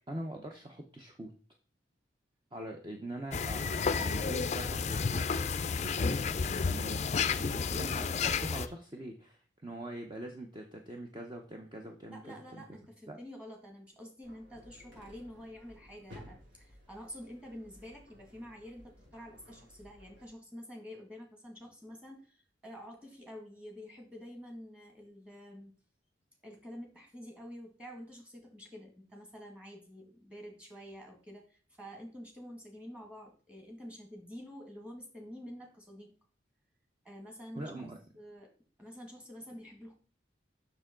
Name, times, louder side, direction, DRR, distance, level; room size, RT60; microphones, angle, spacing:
voice 1, 0.1-1.3 2.5-6.2 6.7-7.1 7.4-12.2 12.5-12.6 13.1-13.2 37.5-38.0, right 1 dB, 25° right, 2 dB, 0.8 m, -43 dB
sound 1, 3.3-8.7, left 5 dB, 40° left, 0.4 m, -31 dB
voice 2, 12.1-25.7 26.4-36.1 37.0-37.9 38.1-38.5 38.8-40.0, equal, 5° right, 1 dB, 2.0 m, -48 dB
sound 2, 14.2-20.3, left 1 dB, 75° right, 2.8 m, -56 dB
7.0 x 6.2 x 3.8 m, 0.38 s
head